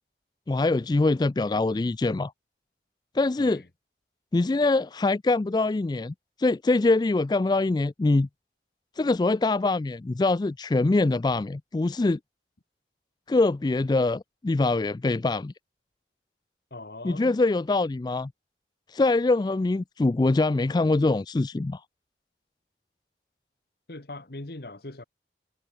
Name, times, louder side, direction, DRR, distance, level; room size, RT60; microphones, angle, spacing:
voice 1, 0.5-2.3 3.1-3.6 4.3-8.3 9.0-12.2 13.3-15.5 17.0-18.3 18.9-21.8, left 2 dB, 25° left, 0.3 m, -24 dB
voice 2, 16.7-17.4 23.9-25.0, left 2 dB, 60° left, 1.6 m, -40 dB
head